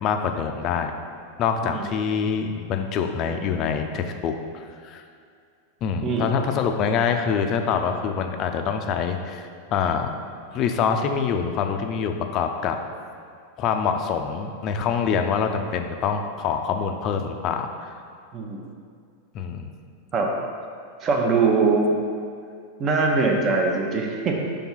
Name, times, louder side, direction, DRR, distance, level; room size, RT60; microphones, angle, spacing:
voice 1, 0.0-0.9 1.4-5.0 5.8-10.1 10.5-12.8 13.6-17.9 19.3-19.7, left 6 dB, 35° left, 5 dB, 0.5 m, -25 dB
voice 2, 21.0-22.0 22.8-24.4, right 4 dB, 30° right, 1 dB, 0.8 m, -22 dB
5.9 x 3.5 x 5.5 m, 2.3 s
figure-of-eight pair, 90°, 0 cm